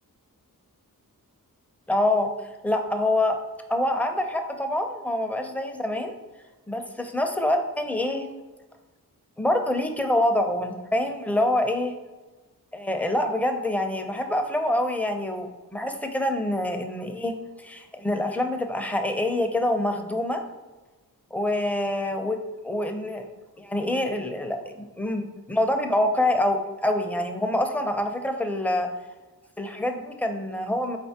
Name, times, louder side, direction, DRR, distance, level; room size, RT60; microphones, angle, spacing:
voice 1, 1.9-2.3 2.6-3.4 3.7-6.1 6.7-8.3 9.4-11.9 12.7-20.4 21.3-22.4 22.6-23.3 23.6-28.9 29.6-31.0, left 1 dB, 5° left, 5 dB, 0.4 m, -26 dB
4.2 x 3.3 x 2.8 m, 1.2 s
wide cardioid pair, 65°, 37 cm